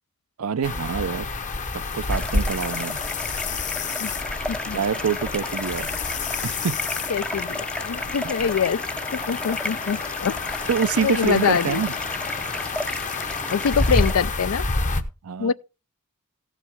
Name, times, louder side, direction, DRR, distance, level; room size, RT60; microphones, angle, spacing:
voice 1, 0.4-1.3 1.9-3.1 4.7-5.9 6.4-6.8 10.7-11.9 15.2-15.5, right 6 dB, 70° right, 0.5 m, -25 dB
sound 1, 0.6-15.0, left 3 dB, 35° left, 0.8 m, -29 dB
sound 2, 2.1-14.1, left 1 dB, 5° left, 0.5 m, -33 dB
voice 2, 4.5-4.8 7.1-8.8 9.1-10.6 11.0-11.8 13.5-14.6 15.4-15.5, left 6 dB, 65° left, 0.4 m, -24 dB
15.5 x 7.3 x 3.5 m
head